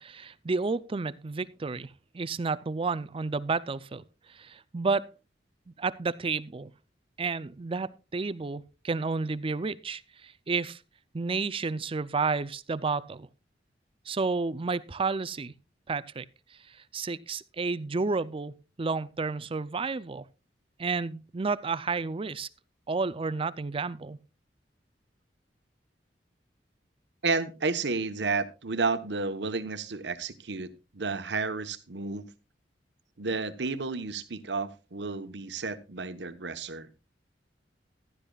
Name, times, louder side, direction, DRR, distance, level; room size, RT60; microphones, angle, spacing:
voice 1, 0.0-4.0 4.3-5.1 5.7-6.7 7.2-10.8 11.1-13.3 14.1-15.5 15.9-16.3 16.7-20.2 20.8-22.5 22.9-24.2, right 4 dB, 30° right, 0.5 m, -31 dB
voice 2, 27.2-32.3 33.2-36.9, right 4 dB, 70° right, 1.1 m, -31 dB
15.5 x 12.0 x 2.3 m
head